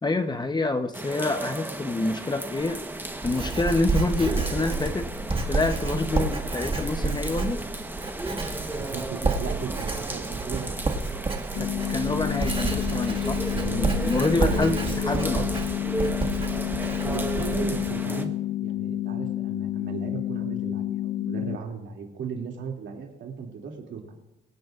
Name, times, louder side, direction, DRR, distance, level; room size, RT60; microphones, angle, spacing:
voice 1, 0.0-2.8 3.2-5.1 5.5-7.6 11.6-13.4 13.7-15.5, left 2 dB, 20° left, 8 dB, 0.9 m, -27 dB
sound 1, 0.9-18.2, right 2 dB, 10° right, 1.1 m, -35 dB
Writing, 2.6-18.0, right 4 dB, 25° right, 1.8 m, -30 dB
voice 2, 8.7-11.0 13.6-13.9 14.3-14.9 17.0-18.3 18.6-24.2, right 6 dB, 70° right, 1 dB, 2.7 m, -36 dB
sound 2, 11.6-21.6, left 13 dB, 60° left, 0.6 m, -30 dB
24.0 x 9.5 x 2.5 m, 0.96 s
cardioid pair, 90°, 20 cm